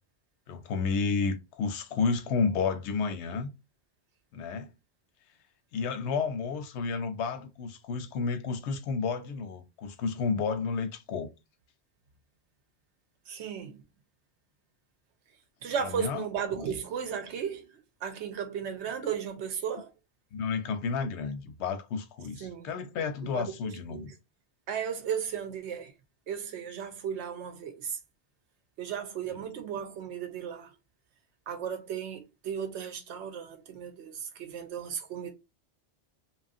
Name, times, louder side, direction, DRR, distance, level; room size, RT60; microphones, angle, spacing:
voice 1, 0.5-3.5 4.3-4.7 5.7-11.3 15.8-16.2 16.6-16.7 20.3-24.1, left 5 dB, 90° left, 0.9 m, -31 dB
voice 2, 13.3-13.8 15.6-17.7 18.0-19.9 22.4-22.7 23.2-24.1 24.7-25.9 26.3-28.0 28.8-30.8 31.5-35.3, right 7 dB, 90° right, 1.0 m, -35 dB
2.9 x 2.3 x 2.5 m
omnidirectional pair, 1.1 m